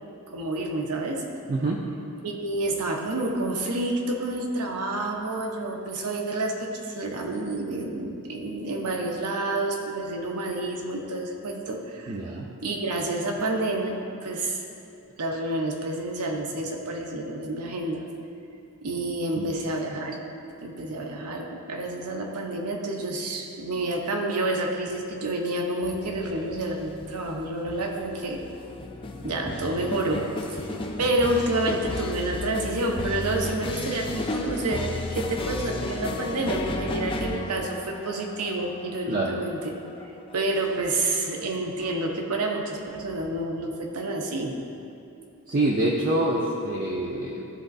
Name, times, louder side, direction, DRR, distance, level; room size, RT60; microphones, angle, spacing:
voice 1, 0.3-1.2 2.2-12.2 12.6-14.6 15.2-18.0 18.8-20.2 20.6-28.4 29.2-30.2 30.5-39.7 40.3-44.5, right 2 dB, 85° right, 2 dB, 0.8 m, -29 dB
voice 2, 1.5-1.8 12.1-12.5 19.4-19.5 39.1-39.4 45.5-47.5, right 1 dB, 40° right, -4 dB, 0.5 m, -26 dB
sound 1, 25.8-40.9, left 2 dB, 25° left, 0.3 m, -34 dB
12.0 x 4.0 x 2.6 m, 2.7 s
head